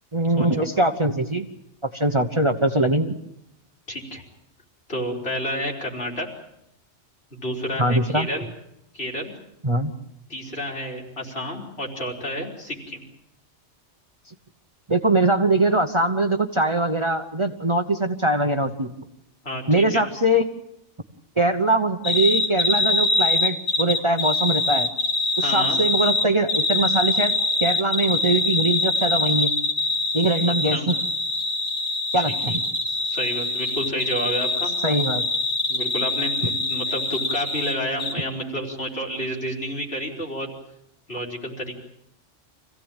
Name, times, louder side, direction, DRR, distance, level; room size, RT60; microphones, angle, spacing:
voice 1, 0.1-1.5 1.9-3.2 7.8-8.3 9.6-9.9 14.9-18.9 19.7-20.4 21.4-24.9 25.4-27.3 27.6-29.5 30.1-30.9 32.1-32.6 34.8-35.2, right 2 dB, 25° right, 7 dB, 1.0 m, -22 dB
voice 2, 3.9-4.2 4.9-6.3 7.3-8.5 8.9-9.3 10.3-13.0 19.4-20.0 25.4-25.8 30.5-30.9 32.2-32.6 32.8-34.7 35.7-40.5 41.1-41.7, equal, 60° left, -1 dB, 4.4 m, -30 dB
sound 1, 22.0-37.7 38.0-38.1, left 3 dB, 90° left, 3.8 m, -24 dB
25.5 x 16.5 x 8.9 m, 0.81 s
omnidirectional pair, 1.2 m